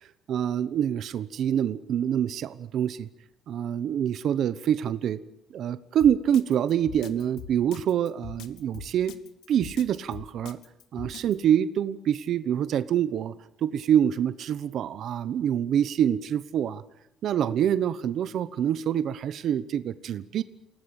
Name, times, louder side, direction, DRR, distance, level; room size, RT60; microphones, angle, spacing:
voice 1, 0.3-3.1 3.5-5.2 5.5-9.1 9.5-10.6 10.9-13.3 13.6-16.8 17.2-20.4, right 9 dB, 55° right, 13 dB, 1.0 m, -26 dB
Drum kit, 6.0-11.3, left 8 dB, 80° left, 2.2 m, -42 dB
29.0 x 18.5 x 8.9 m, 0.82 s
cardioid pair, 160°, 0 cm